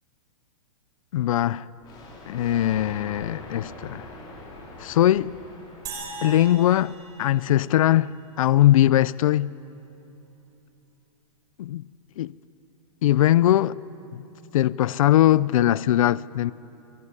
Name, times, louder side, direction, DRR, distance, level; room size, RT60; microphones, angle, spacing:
voice 1, 1.1-1.7 2.3-4.1 4.8-5.3 6.2-6.9 7.2-9.5 11.6-11.8 12.2-12.3 13.0-13.8 14.1-14.2 14.5-16.5, left 13 dB, 65° left, 0.5 m, -20 dB
Thunder, 1.8-7.2, left 2 dB, 25° left, 4.4 m, -43 dB
sound 1, 5.9-8.3, right 4 dB, 20° right, 4.3 m, -40 dB
26.5 x 17.5 x 9.9 m
hypercardioid pair, 165°, 19 cm